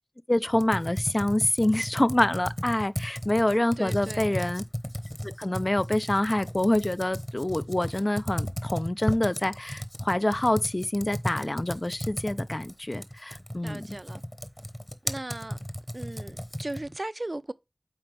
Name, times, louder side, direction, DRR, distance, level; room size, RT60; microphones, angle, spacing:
voice 1, 0.3-4.6 5.2-14.0, left 1 dB, 40° left, 0.4 m, -26 dB
Computer keyboard, 0.5-17.0, equal, 10° left, 0.9 m, -35 dB
voice 2, 3.8-4.3 13.6-14.2 15.0-15.6 15.9-17.5, right 2 dB, 50° right, 0.5 m, -37 dB
7.9 x 4.5 x 3.3 m
wide cardioid pair, 45°, 0 cm